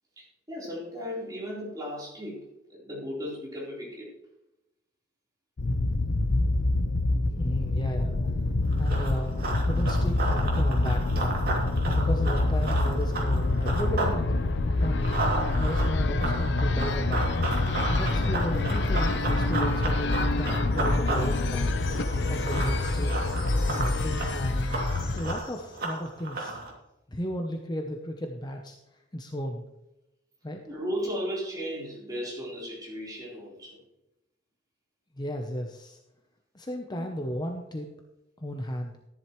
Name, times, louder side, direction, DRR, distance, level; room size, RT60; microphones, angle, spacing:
voice 1, 0.2-2.4 2.7-4.1 8.0-8.3 30.7-33.8 36.9-37.0, equal, 20° right, -5 dB, 3.9 m, -36 dB
sound 1, 5.6-25.4, left 2 dB, 65° left, 0.7 m, -26 dB
voice 2, 7.4-8.2 8.8-9.3 9.6-11.3 11.9-14.3 14.8-15.2 15.6-17.3 17.9-21.7 22.3-23.3 23.7-24.8 25.1-26.6 27.1-28.8 29.1-29.6 30.4-30.6 35.1-36.0 36.5-37.9 38.4-38.9, equal, 20° left, 3 dB, 0.8 m, -34 dB
Run, 8.7-14.2 14.5-26.7, right 2 dB, 50° right, 2.7 m, -33 dB
Wind chime, 20.7-26.1, left 6 dB, 85° left, 3.2 m, -47 dB
13.5 x 10.5 x 3.1 m, 0.92 s
head